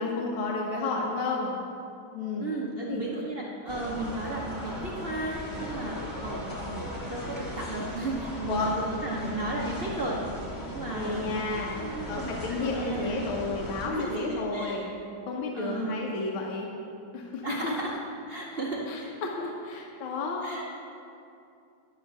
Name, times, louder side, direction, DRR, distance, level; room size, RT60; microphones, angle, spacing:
voice 1, 0.0-1.6 2.1-3.0 8.5-8.7 10.9-11.8 12.1-14.9 15.3-16.7 17.1-17.7 18.9-20.5, left 3 dB, 80° left, -1 dB, 1.6 m, -32 dB
voice 2, 2.4-11.4 11.7-13.2 13.8-15.0 15.5-16.1 17.4-18.0 18.3-19.1 20.4-20.6, right 2 dB, 75° right, -4 dB, 0.5 m, -34 dB
sound 1, 3.7-13.9, left 1 dB, 10° left, 1.2 m, -38 dB
10.5 x 4.4 x 7.1 m, 2.6 s
omnidirectional pair, 2.2 m